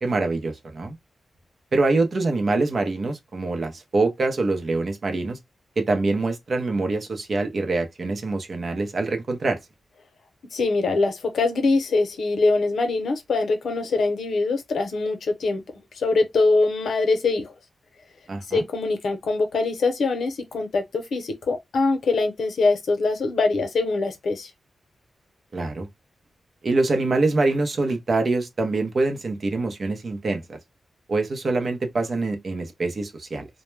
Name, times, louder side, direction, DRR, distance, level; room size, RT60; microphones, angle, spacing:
voice 1, 0.0-1.0 1.7-5.4 5.8-9.6 18.3-18.6 25.5-25.9 26.6-30.6 31.1-33.5, right 3 dB, 50° right, 0.6 m, -24 dB
voice 2, 10.5-15.6 15.9-17.5 18.5-24.5, left 3 dB, 75° left, 0.7 m, -23 dB
2.2 x 2.1 x 3.1 m
wide cardioid pair, 95°, 0 cm